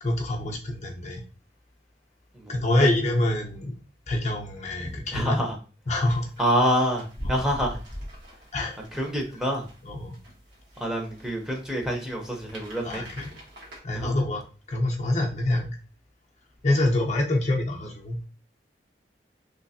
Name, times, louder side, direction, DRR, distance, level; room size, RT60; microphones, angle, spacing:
voice 1, 0.0-1.2 2.5-3.8 4.1-5.4 5.9-6.3 8.5-8.8 9.8-10.2 12.8-13.3 13.8-15.8 16.6-18.2, left 1 dB, 40° left, 0 dB, 0.6 m, -26 dB
voice 2, 2.3-2.9 4.8-5.6 6.4-7.8 8.9-9.7 10.8-13.0 13.9-14.1, equal, 5° right, 0 dB, 0.7 m, -27 dB
sound 1, 6.0-13.8, equal, 75° right, 1.3 m, -43 dB
3.2 x 3.0 x 2.7 m, 0.35 s
head